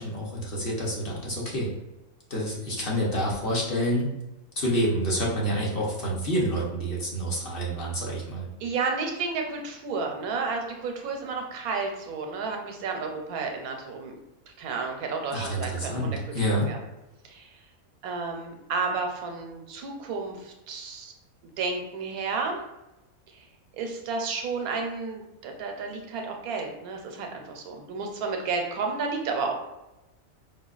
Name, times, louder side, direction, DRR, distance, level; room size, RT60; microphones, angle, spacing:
voice 1, 0.0-1.7 2.3-4.1 4.6-8.4 15.3-16.7, equal, 45° left, -4 dB, 0.9 m, -28 dB
voice 2, 8.6-14.2 14.6-16.2 16.5-16.8 17.2-17.5 18.0-21.1 21.6-22.6 23.3-23.5 23.7-29.5, right 4 dB, 85° right, 3 dB, 1.1 m, -31 dB
4.9 x 2.2 x 2.4 m, 0.97 s
omnidirectional pair, 1.5 m